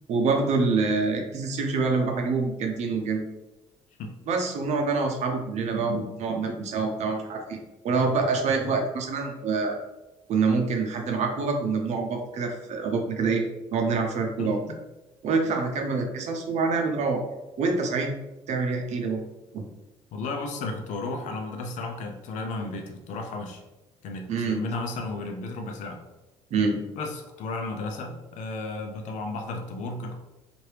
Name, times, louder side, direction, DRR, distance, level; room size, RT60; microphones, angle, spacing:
voice 1, 0.1-3.2 4.3-7.6 7.8-9.8 10.3-13.4 13.7-14.6 15.2-17.2 17.6-18.1 18.5-19.2 19.5-19.6 24.3-24.6 26.5-26.8, right 4 dB, 60° right, 3 dB, 0.6 m, -26 dB
voice 2, 14.4-14.8 20.1-23.6 24.0-26.0 27.0-30.2, left 3 dB, 70° left, 3 dB, 0.6 m, -34 dB
2.8 x 2.5 x 3.2 m, 1.0 s
supercardioid pair, 70°, 13 cm